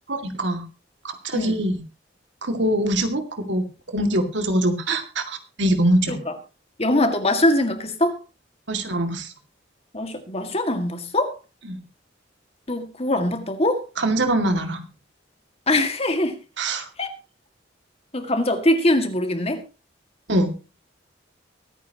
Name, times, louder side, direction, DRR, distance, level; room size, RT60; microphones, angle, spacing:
voice 1, 0.1-0.7 1.0-1.8 2.4-6.2 8.7-9.3 11.7-11.8 14.0-14.8 16.6-16.9 20.3-20.5, right 1 dB, 70° right, 2.3 m, -23 dB
voice 2, 6.8-8.2 9.9-11.4 12.7-13.8 15.7-16.3 17.0-17.1 18.1-19.6, left 1 dB, 30° left, 2.0 m, -22 dB
23.5 x 9.4 x 3.0 m
head